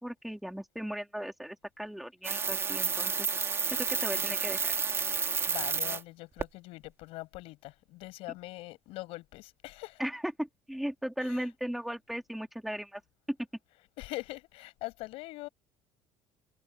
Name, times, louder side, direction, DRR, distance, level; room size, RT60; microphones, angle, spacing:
voice 1, 0.0-4.7 10.0-13.0 13.3-13.4, equal, ahead, 3.4 m, -37 dB
sound 1, 2.2-6.0 6.4-6.5, right 5 dB, 25° right, 3.6 m, -30 dB
voice 2, 5.5-10.0 11.2-11.5 14.0-15.5, left 20 dB, 75° left, 7.5 m, -42 dB
cardioid pair, 135°, 10 cm